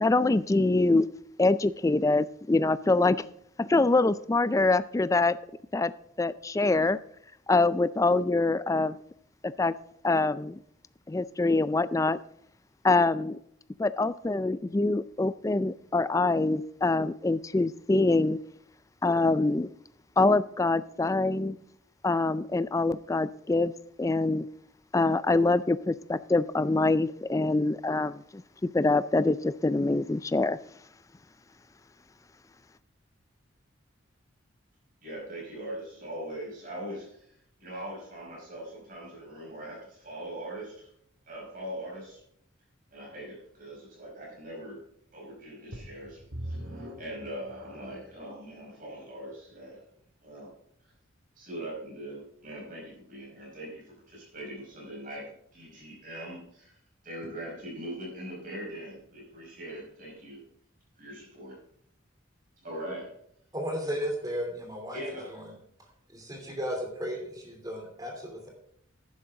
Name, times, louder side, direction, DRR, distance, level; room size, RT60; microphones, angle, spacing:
voice 1, 0.0-1.1 1.4-3.2 3.6-5.4 5.7-5.9 6.2-7.0 7.5-9.0 9.4-9.7 10.0-10.6 11.1-12.2 12.8-13.4 13.8-18.4 19.0-19.7 20.2-21.6 22.0-23.7 24.0-24.5 24.9-30.6, left 2 dB, 15° left, 15 dB, 0.3 m, -25 dB
voice 2, 35.0-37.3 37.6-40.9 41.3-42.2 42.9-44.8 45.1-49.8 50.2-50.5 51.4-55.3 55.5-56.8 57.0-60.4 61.0-61.6 62.6-63.1 64.9-65.3, right 1 dB, 40° right, -3 dB, 5.1 m, -41 dB
sound 1, 45.7-48.1 48.8-48.9 49.5-49.6, right 1 dB, 70° right, 2.2 m, -41 dB
voice 3, 63.5-65.0 65.3-65.5 66.1-68.5, equal, 20° right, 1 dB, 2.9 m, -34 dB
11.5 x 10.0 x 3.7 m, 0.71 s
head